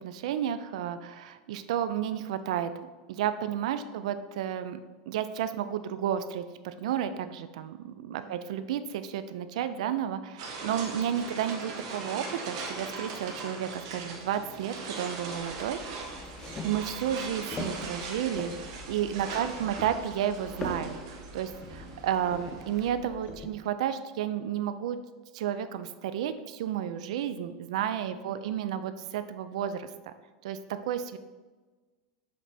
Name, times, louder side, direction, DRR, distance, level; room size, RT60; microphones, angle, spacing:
voice 1, 0.0-2.7 3.1-4.8 5.1-15.8 16.6-18.5 18.9-25.0 25.3-30.1 30.4-31.2, right 10 dB, 85° right, 11 dB, 0.3 m, -32 dB
voice 2, 8.1-8.5 18.5-18.9 19.3-19.8 23.1-23.5 28.2-28.8, right 2 dB, 45° right, -1 dB, 1.5 m, -57 dB
sound 1, 10.4-22.9, right 3 dB, 70° right, 1.3 m, -40 dB
sound 2, 15.4-23.5, left 2 dB, 20° left, 0.8 m, -43 dB
7.5 x 3.3 x 4.1 m, 1.3 s
supercardioid pair, 150°, 4 cm